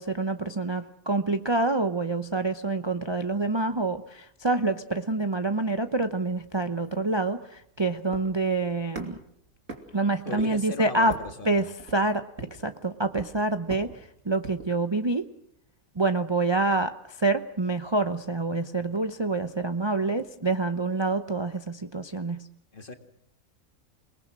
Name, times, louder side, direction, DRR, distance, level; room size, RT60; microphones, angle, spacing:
voice 1, 0.0-9.2 9.9-11.1 11.5-12.2 12.5-15.3 16.0-22.5, right 3 dB, 25° right, 8 dB, 0.7 m, -27 dB
sound 1, 6.1-14.8, right 2 dB, 60° right, 3.3 m, -45 dB
voice 2, 10.2-11.7 22.7-22.9, left 3 dB, 35° left, 6 dB, 2.2 m, -37 dB
28.5 x 20.0 x 6.2 m, 0.71 s
omnidirectional pair, 1.5 m